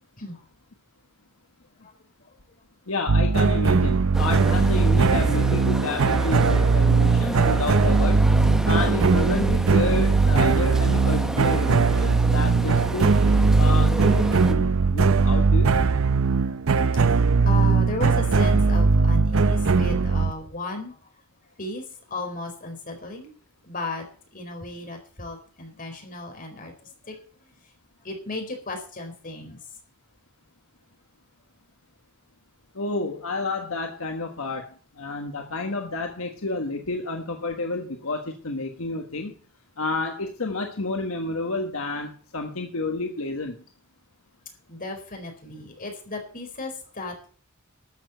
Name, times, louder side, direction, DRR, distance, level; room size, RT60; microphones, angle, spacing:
voice 1, 2.9-8.2 8.6-13.1 13.6-15.7 32.7-39.3 39.8-43.6, left 3 dB, 75° left, 4 dB, 1.4 m, -30 dB
sound 1, 3.1-20.3, right 4 dB, 70° right, 0.6 m, -20 dB
sound 2, 4.1-14.5, equal, 5° right, 0.9 m, -32 dB
voice 2, 17.2-21.1 21.6-23.3 23.6-24.0 24.3-27.5 28.0-29.7 44.7-47.3, left 2 dB, 40° left, 4 dB, 4.6 m, -35 dB
13.0 x 6.9 x 8.0 m, 0.42 s
head